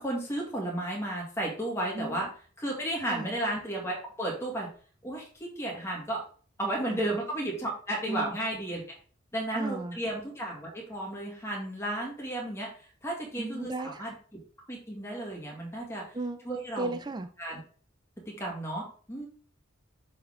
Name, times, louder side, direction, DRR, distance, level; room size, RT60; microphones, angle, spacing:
voice 1, 0.0-2.3 2.6-4.7 5.0-6.2 6.6-8.8 9.3-12.7 13.0-14.1 14.7-16.0 16.4-17.0 17.4-17.6 18.4-19.3, right 1 dB, 10° left, -2 dB, 1.9 m, -33 dB
voice 2, 1.9-2.3 3.1-3.3 6.9-7.2 8.1-8.3 9.5-10.0 13.4-14.1 16.1-16.4 16.8-17.3, right 2 dB, 20° right, 9 dB, 0.3 m, -35 dB
6.7 x 4.2 x 3.7 m, 0.42 s
head